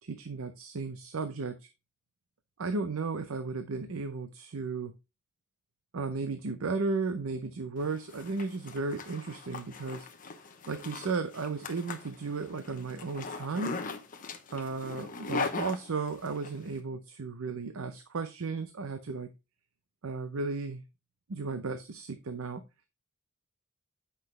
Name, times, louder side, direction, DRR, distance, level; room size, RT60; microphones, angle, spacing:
voice 1, 0.0-1.7 2.6-4.9 5.9-10.1 10.7-13.8 14.5-19.3 20.0-20.8 21.3-22.6, right 4 dB, 75° right, 9 dB, 0.6 m, -34 dB
Zipper (clothing), 7.8-16.5, left 4 dB, 40° left, 0.9 m, -39 dB
7.9 x 5.6 x 3.2 m, 0.26 s
head